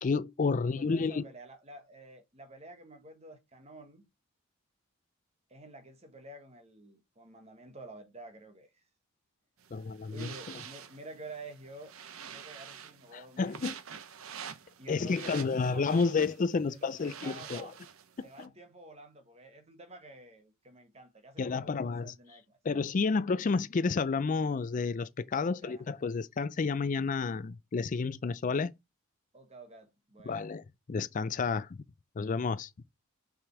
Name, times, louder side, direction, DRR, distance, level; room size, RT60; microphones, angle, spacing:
voice 1, 0.0-1.2 9.7-10.3 13.1-13.8 14.9-17.7 18.4-18.5 21.4-22.1 22.6-28.7 30.3-31.8 32.2-32.7, left 4 dB, 35° left, 0.4 m, -30 dB
voice 2, 0.5-4.0 5.5-8.7 10.1-11.9 12.3-13.7 14.5-16.2 16.7-17.8 18.2-22.6 25.4-25.8 29.3-30.5, right 2 dB, 30° right, 1.4 m, -50 dB
sound 1, 9.6-18.5, right 8 dB, 80° right, 0.8 m, -47 dB
6.1 x 4.9 x 4.7 m
head